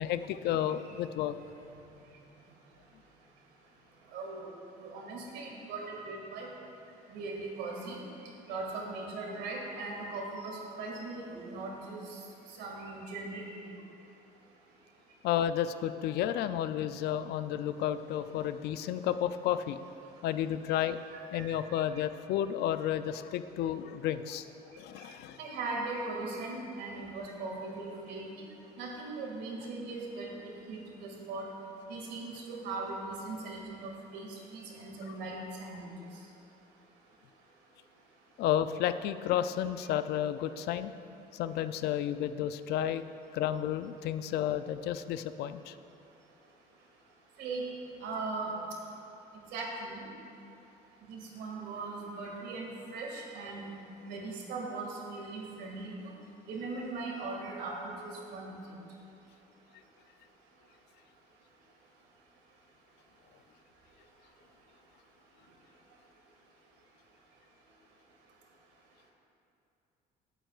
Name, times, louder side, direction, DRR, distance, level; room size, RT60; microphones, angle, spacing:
voice 1, 0.0-1.3 15.2-19.8 20.2-21.0 21.3-24.5 24.8-25.4 38.4-40.9 41.3-43.0 43.3-45.7, left 11 dB, 75° left, 12 dB, 0.4 m, -32 dB
voice 2, 4.1-4.5 4.8-6.5 7.1-8.0 8.5-12.2 12.6-13.5 21.1-21.5 25.4-28.2 28.8-31.5 31.9-35.9 47.4-47.6 48.0-48.5 49.5-50.1 51.0-55.9 56.5-58.5, right 3 dB, 90° right, -1 dB, 2.1 m, -39 dB
18.0 x 8.9 x 2.4 m, 2.7 s
cardioid pair, 110°, 17 cm